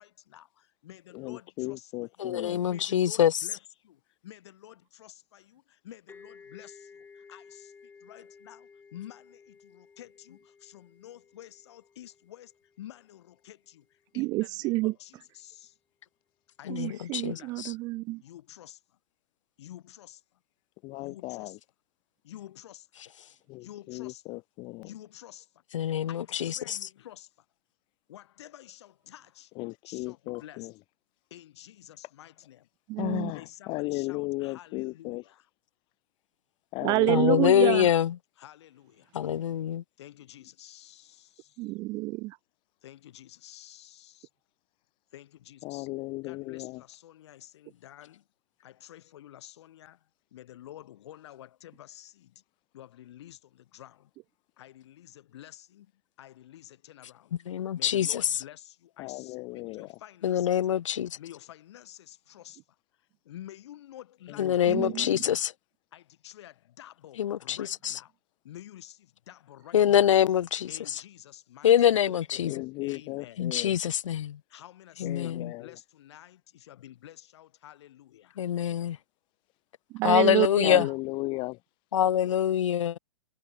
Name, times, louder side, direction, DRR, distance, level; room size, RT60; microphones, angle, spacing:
voice 1, 0.0-2.4 2.6-15.8 16.6-17.6 18.2-19.0 19.6-20.4 21.0-21.6 22.2-22.9 23.6-24.4 24.8-25.6 26.1-27.5 28.1-29.5 29.8-30.7 31.3-32.7 33.3-35.5 38.4-39.1 40.0-41.7 42.8-44.3 45.1-45.9 46.2-48.3 48.6-52.4 52.7-54.1 54.6-55.9 56.2-57.4 57.7-60.5 61.2-65.4 65.9-68.1 68.4-70.1 70.7-72.0 72.8-73.5 74.5-78.4, left 12 dB, 60° left, 5.4 m, -50 dB
voice 2, 1.1-2.6 20.8-21.6 23.5-24.9 29.6-30.7 33.0-35.2 36.7-37.8 45.6-46.8 59.0-59.9 64.4-65.2 72.4-73.8 75.0-75.7 80.6-81.6, left 23 dB, 30° left, 0.7 m, -35 dB
voice 3, 2.2-3.3 16.7-17.7 25.7-26.8 37.1-38.2 39.1-39.8 57.5-58.2 60.2-61.2 64.4-65.5 67.2-67.6 67.8-67.9 69.7-70.7 71.6-72.5 73.4-74.4 75.0-75.5 78.4-79.0 80.0-80.9 81.9-83.0, left 10 dB, 80° left, 0.4 m, -25 dB
sound 1, 6.1-13.6, left 5 dB, 10° left, 6.8 m, -55 dB
voice 4, 14.2-14.9 16.7-18.2 32.9-33.3 36.8-37.9 41.6-42.4 64.7-65.1 80.0-80.8, right 21 dB, 25° right, 0.3 m, -28 dB
hypercardioid pair, 130°, 16 cm